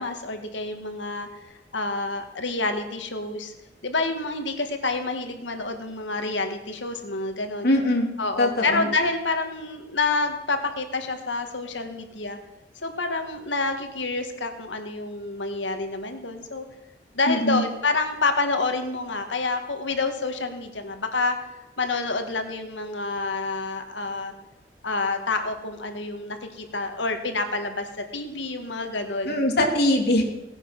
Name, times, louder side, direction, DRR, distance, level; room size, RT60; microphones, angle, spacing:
voice 1, 0.0-3.5 3.8-7.7 8.2-12.4 12.8-16.6 17.1-21.4 21.8-24.3 24.8-29.5, left 3 dB, 80° left, 6 dB, 1.8 m, -28 dB
voice 2, 7.6-8.1 8.4-8.9 17.3-17.6 29.2-30.2, left 1 dB, 60° left, 1 dB, 2.9 m, -21 dB
17.5 x 9.9 x 6.1 m, 0.97 s
head